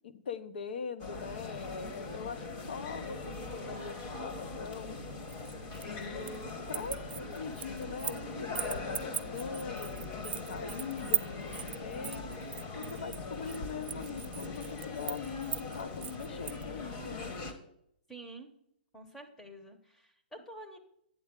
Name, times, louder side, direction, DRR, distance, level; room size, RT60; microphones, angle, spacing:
voice 1, 0.0-5.0 5.8-6.3 6.7-12.3 12.7-17.3, left 6 dB, 65° left, 12 dB, 0.8 m, -42 dB
sound 1, 1.0-17.5, left 3 dB, 30° left, 1.0 m, -41 dB
sound 2, 5.3-6.4 6.7-8.2 8.6-16.6, right 10 dB, 70° right, 0.4 m, -38 dB
voice 2, 18.1-18.5 18.9-20.8, right 2 dB, 5° left, 5 dB, 0.8 m, -48 dB
8.7 x 7.1 x 3.7 m, 0.72 s
hypercardioid pair, 165°, 6 cm